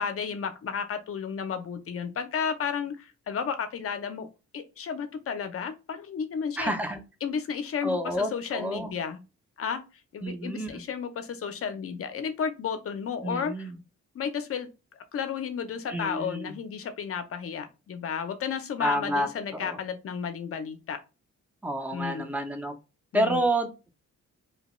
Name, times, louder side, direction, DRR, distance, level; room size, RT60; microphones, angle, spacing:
voice 1, 0.0-4.3 4.5-6.7 7.2-9.2 9.6-9.8 10.1-13.7 14.1-14.7 15.1-21.0 21.9-22.3 23.1-23.4, left 6 dB, 50° left, 8 dB, 0.5 m, -32 dB
voice 2, 6.6-7.0 7.8-8.9 10.2-10.8 13.2-13.8 15.9-16.6 18.8-19.8 21.6-22.7 23.1-23.9, right 1 dB, 5° right, 6 dB, 0.5 m, -29 dB
2.8 x 2.2 x 3.0 m, 0.29 s
cardioid pair, 115°, 30 cm